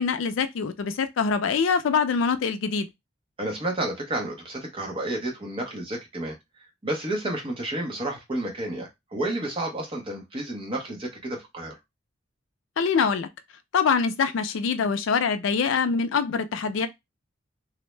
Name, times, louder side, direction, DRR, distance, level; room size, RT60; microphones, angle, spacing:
voice 1, 0.0-2.9 12.8-13.3 13.7-16.9, left 5 dB, 75° left, 0.4 m, -24 dB
voice 2, 3.4-6.4 6.8-11.8, right 1 dB, 25° right, 0.8 m, -31 dB
2.6 x 2.1 x 3.1 m
head